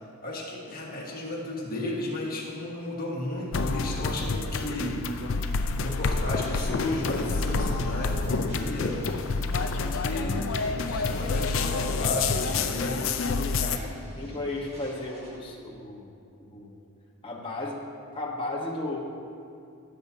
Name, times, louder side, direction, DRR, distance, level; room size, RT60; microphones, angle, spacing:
voice 1, 0.2-5.0 5.8-9.1 9.7-10.4 10.9-13.1, left 1 dB, 40° left, -3 dB, 1.5 m, -33 dB
sound 1, 3.5-13.8, left 4 dB, 60° left, 0.5 m, -28 dB
sound 2, 6.4-15.5, equal, 30° right, 1.7 m, -47 dB
voice 2, 13.2-16.1 16.4-16.7 17.2-17.8 18.1-19.0, left 2 dB, 25° left, -3 dB, 1.1 m, -35 dB
15.5 x 7.0 x 2.8 m, 2.5 s
head